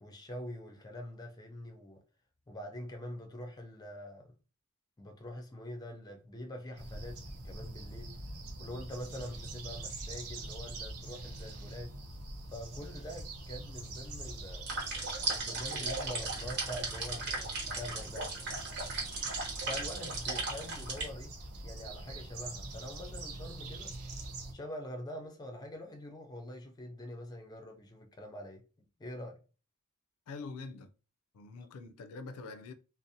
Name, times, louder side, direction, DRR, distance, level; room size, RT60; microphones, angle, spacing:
voice 1, 0.0-2.0 2.5-4.3 5.0-8.2 8.6-11.9 12.5-18.3 19.3-21.4 21.6-23.9 24.5-28.6 29.0-29.4, left 1 dB, 20° left, 0.4 m, -45 dB
sound 1, 6.8-24.5, right 2 dB, 85° right, 0.5 m, -44 dB
sound 2, 14.7-21.1, right 3 dB, 50° right, 0.9 m, -37 dB
voice 2, 30.3-30.9 31.3-32.7, left 3 dB, 80° left, 0.4 m, -44 dB
2.5 x 2.0 x 2.6 m
head